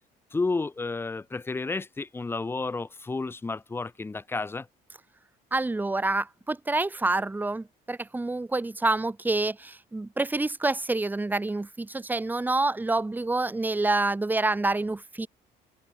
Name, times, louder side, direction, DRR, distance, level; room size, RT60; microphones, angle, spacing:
voice 1, 0.3-4.7, left 3 dB, 15° left, 0.6 m, -31 dB
voice 2, 5.5-15.3, right 2 dB, 10° right, 0.9 m, -27 dB
cardioid pair, 110°, 17 cm